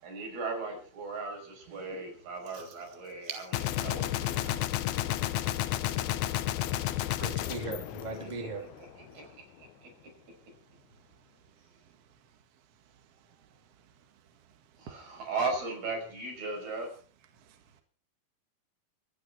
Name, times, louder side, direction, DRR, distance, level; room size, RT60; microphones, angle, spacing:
voice 1, 0.0-3.4 3.8-4.9 8.2-8.5 8.8-8.9 9.1-9.3 9.6-10.1 14.8-17.0, right 3 dB, 85° right, 7.3 m, -37 dB
voice 2, 3.2-3.7 7.2-8.6, right 3 dB, 15° right, 2.4 m, -39 dB
Gunshot gunfire, 3.5-8.7, left 13 dB, 75° left, 1.8 m, -31 dB
voice 3, 4.0-5.2 5.9-6.3 6.8-6.9 9.2-9.3 17.4-17.8, right 6 dB, 50° right, 2.1 m, -53 dB
26.0 x 9.6 x 4.5 m
omnidirectional pair, 4.2 m